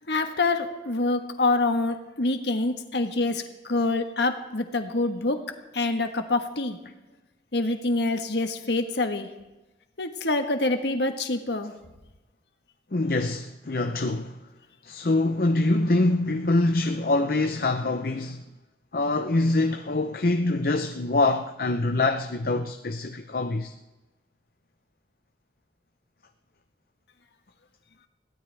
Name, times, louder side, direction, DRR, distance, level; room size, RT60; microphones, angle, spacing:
voice 1, 0.1-5.4 5.7-6.8 7.5-9.3 10.0-11.7, left 2 dB, 75° left, 1.4 m, -26 dB
voice 2, 12.9-14.4 14.8-18.4 18.9-23.7, left 2 dB, 55° left, 0.7 m, -24 dB
22.0 x 16.0 x 3.4 m
head